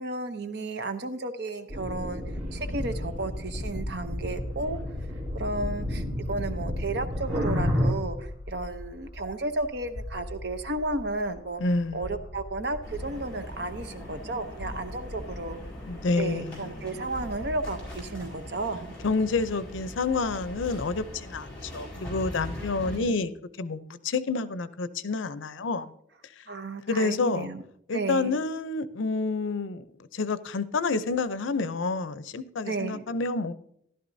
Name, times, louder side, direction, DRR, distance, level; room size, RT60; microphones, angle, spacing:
voice 1, 0.0-2.2 2.5-4.8 5.3-11.6 11.9-15.6 16.2-18.9 22.5-23.2 26.5-27.6 27.9-28.4 32.6-33.0, right 2 dB, 60° right, 0.8 m, -33 dB
sound 1, 1.7-7.9, left 1 dB, 85° right, 2.2 m, -31 dB
sound 2, 2.2-21.0, left 1 dB, 60° left, 1.4 m, -41 dB
voice 2, 11.6-12.1 15.9-16.8 19.0-23.3 23.6-25.9 26.9-27.5 27.9-29.9 30.1-33.5, left 3 dB, 85° left, 0.6 m, -29 dB
sound 3, 12.8-23.0, equal, 5° left, 4.3 m, -41 dB
13.5 x 11.5 x 2.7 m
head